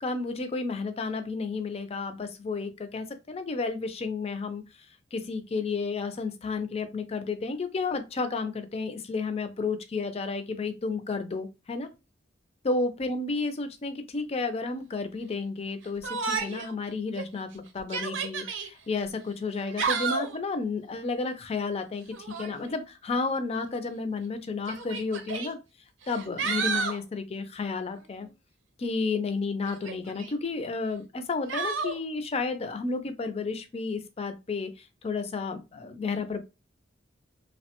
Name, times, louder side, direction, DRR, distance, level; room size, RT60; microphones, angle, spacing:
voice 1, 0.0-4.6 5.1-11.9 12.6-22.0 22.4-25.6 26.1-28.3 28.8-36.4, left 4 dB, 35° left, 0.4 m, -32 dB
Yell, 16.0-16.7 17.2-17.3 17.8-18.7 19.5-20.4 22.1-22.6 23.7-23.8 24.7-25.5 26.0-27.0 29.7-30.3 31.5-32.0, right 5 dB, 85° right, 0.6 m, -31 dB
2.9 x 2.1 x 2.8 m
head